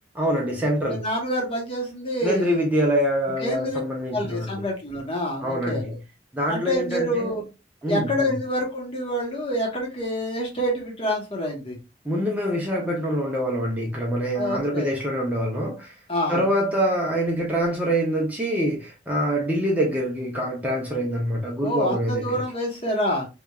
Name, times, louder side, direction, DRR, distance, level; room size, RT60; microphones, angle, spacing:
voice 1, 0.2-1.0 2.2-4.6 5.4-5.9 6.3-7.4 7.8-8.3 12.0-15.9 16.3-22.4, equal, 10° right, 0.5 m, -25 dB
voice 2, 0.9-2.7 3.4-3.8 4.1-6.0 6.5-7.4 7.9-11.8 14.3-15.0 16.1-16.5 21.6-23.3, equal, 30° left, 0.9 m, -27 dB
3.0 x 2.3 x 2.2 m
head